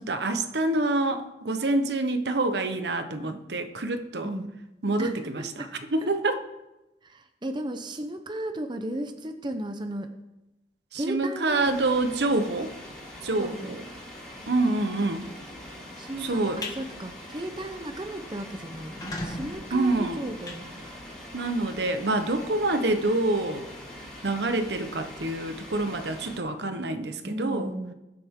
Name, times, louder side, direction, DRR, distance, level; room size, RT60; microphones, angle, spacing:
voice 1, 0.0-4.3 4.8-6.4 10.9-12.7 13.2-13.8 14.5-15.3 16.2-16.7 19.7-20.3 21.3-23.7 24.2-27.7, right 2 dB, 75° right, 8 dB, 1.1 m, -27 dB
voice 2, 4.2-4.6 5.0-5.7 6.0-6.1 7.0-10.1 10.9-11.7 13.4-13.8 16.0-20.9 27.2-27.9, right 1 dB, 25° right, 7 dB, 0.7 m, -35 dB
sound 1, 11.6-26.4, left 1 dB, 5° left, 3.6 m, -43 dB
sound 2, 16.6-16.8 17.2-17.5 17.8-17.9 18.1-18.2 18.8-21.3, left 1 dB, 20° left, 1.5 m, -38 dB
21.0 x 7.7 x 3.7 m, 1.0 s
head